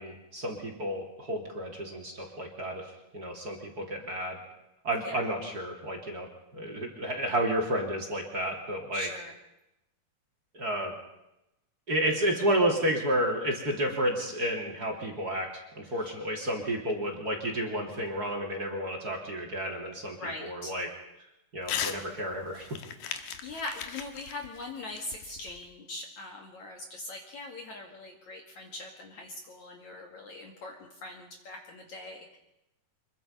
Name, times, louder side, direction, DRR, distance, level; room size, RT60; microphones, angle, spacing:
voice 1, 0.0-4.4 4.8-6.3 6.5-9.1 10.5-10.9 11.9-20.9 21.5-22.7, right 1 dB, 25° right, 1 dB, 2.8 m, -31 dB
voice 2, 8.9-9.3 16.0-16.1 20.0-20.7 23.0-32.4, left 2 dB, 50° left, 2 dB, 3.0 m, -42 dB
Crumpling crinkling / Tearing, 21.6-22.0 22.3-25.7, left 8 dB, 65° left, 2.8 m, -37 dB
25.5 x 22.5 x 5.5 m, 0.90 s
omnidirectional pair, 4.7 m